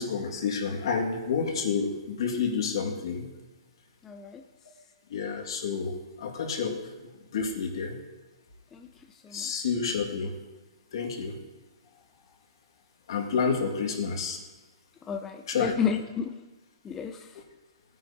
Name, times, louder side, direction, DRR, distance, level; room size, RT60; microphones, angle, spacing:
voice 1, 0.0-3.3 5.1-6.8 7.3-7.9 9.3-10.4 10.9-11.4 13.1-14.4 15.5-15.7, left 5 dB, 65° left, 2 dB, 2.0 m, -29 dB
voice 2, 4.0-4.4 8.7-9.5 15.0-16.5 16.8-17.4, left 7 dB, 10° left, 5 dB, 0.4 m, -32 dB
18.0 x 9.4 x 2.8 m, 1.2 s
hypercardioid pair, 160°, 3 cm